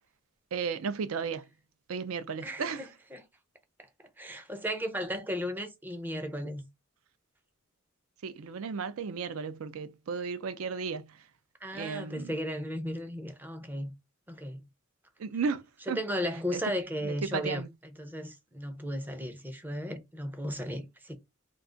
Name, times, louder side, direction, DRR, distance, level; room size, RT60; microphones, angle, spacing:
voice 1, 0.5-1.4 1.9-2.9 8.2-11.2 11.7-12.3 15.2-16.0 16.5-16.6 17.0-17.7, right 5 dB, 65° right, 0.4 m, -34 dB
voice 2, 2.4-3.2 4.2-6.7 11.6-13.9 14.3-14.6 15.9-17.6 18.0-21.2, equal, 10° right, 0.5 m, -35 dB
2.4 x 2.3 x 3.7 m
head